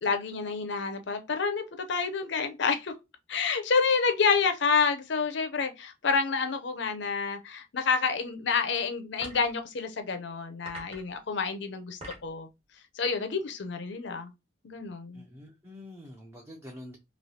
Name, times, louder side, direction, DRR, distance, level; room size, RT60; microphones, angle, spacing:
voice 1, 0.0-2.9 3.3-12.5 13.0-14.3 14.6-15.2, left 5 dB, 60° left, 0.5 m, -28 dB
sound 1, 9.1-9.6 10.6-11.2 11.8-12.4, right 1 dB, 30° right, 1.2 m, -44 dB
voice 2, 15.1-17.0, left 1 dB, 15° right, 0.5 m, -46 dB
3.2 x 2.7 x 2.7 m
head